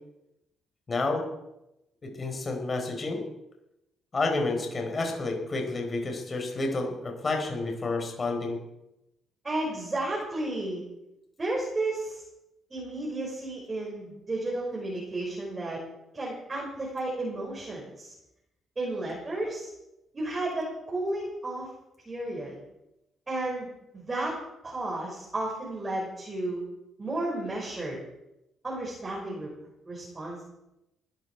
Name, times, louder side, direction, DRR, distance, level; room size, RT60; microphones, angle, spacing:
voice 1, 0.9-1.2 2.0-3.2 4.1-8.6, left 3 dB, 35° left, 3 dB, 4.7 m, -30 dB
voice 2, 9.4-10.8 11.4-12.2 12.7-15.8 16.1-18.1 18.8-19.7 20.1-21.7 22.1-22.6 23.3-23.7 23.9-24.4 24.6-26.6 27.0-28.0 28.6-29.5 29.9-30.4, right 2 dB, 25° right, -3 dB, 5.9 m, -32 dB
20.0 x 13.0 x 4.7 m, 0.89 s
cardioid pair, 90°, 0 cm